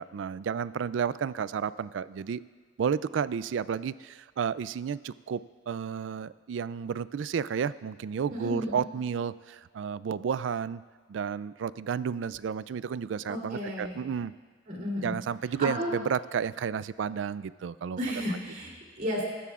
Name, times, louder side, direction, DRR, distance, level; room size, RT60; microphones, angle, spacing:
voice 1, 0.0-2.4 2.8-10.8 11.1-14.3 15.0-18.0, right 7 dB, 80° right, 17 dB, 0.3 m, -32 dB
voice 2, 8.3-8.8 13.3-14.0 14.7-15.1 15.6-15.9 18.0-19.2, equal, 50° right, -2 dB, 3.2 m, -33 dB
22.5 x 12.5 x 2.4 m, 1.5 s
head